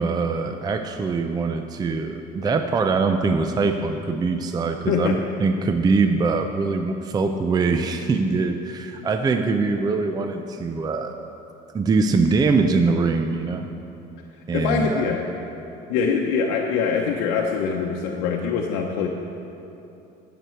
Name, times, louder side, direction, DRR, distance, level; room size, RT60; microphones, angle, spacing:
voice 1, 0.0-11.1 11.7-13.7 14.5-15.1, right 4 dB, 20° right, 6 dB, 0.5 m, -23 dB
voice 2, 4.9-5.2 14.5-15.3 15.9-19.1, left 6 dB, 85° left, 0 dB, 0.8 m, -23 dB
15.5 x 6.8 x 4.5 m, 2.9 s
cardioid pair, 115°, 20 cm